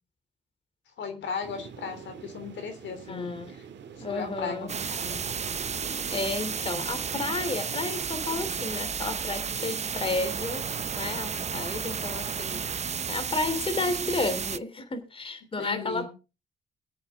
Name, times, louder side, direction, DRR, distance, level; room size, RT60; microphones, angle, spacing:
voice 1, 1.0-3.6 4.0-5.2 15.6-16.1, left 6 dB, 65° left, 7 dB, 3.1 m, -36 dB
sound 1, 1.4-8.7, right 7 dB, 65° right, 2.1 m, -46 dB
voice 2, 3.1-3.5 4.0-4.7 6.1-10.7 10.9-16.1, left 2 dB, 25° left, 10 dB, 2.9 m, -32 dB
sound 2, 4.7-14.6, right 6 dB, 35° right, 0.7 m, -32 dB
23.0 x 8.1 x 3.6 m, 0.32 s
cardioid pair, 90°, 20 cm